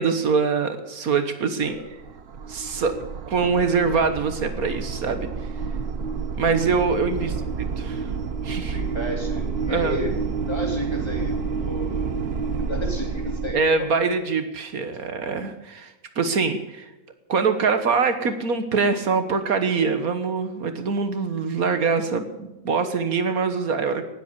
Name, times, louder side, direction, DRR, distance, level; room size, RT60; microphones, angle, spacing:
voice 1, 0.0-1.8 2.5-3.0 3.3-5.3 6.4-8.0 8.4-8.8 9.7-10.0 13.5-16.9 17.3-24.0, right 5 dB, 70° right, 9 dB, 1.7 m, -24 dB
voice 2, 1.6-1.9 7.2-7.5 8.7-12.1 12.6-14.1, equal, 15° left, 0 dB, 4.1 m, -33 dB
sound 1, 1.6-13.5, right 5 dB, 45° right, 1.1 m, -29 dB
18.5 x 8.3 x 6.8 m, 1.0 s
omnidirectional pair, 1.6 m